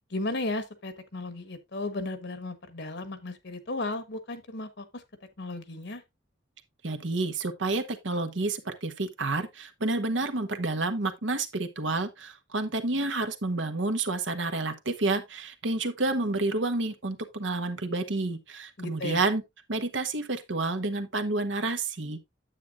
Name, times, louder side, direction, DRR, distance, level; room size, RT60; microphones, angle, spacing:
voice 1, 0.1-4.8 5.4-6.0 18.8-19.2, left 2 dB, 65° left, 1.3 m, -35 dB
voice 2, 6.8-19.4 19.7-22.2, right 2 dB, 80° right, 1.2 m, -29 dB
9.4 x 7.9 x 2.5 m
head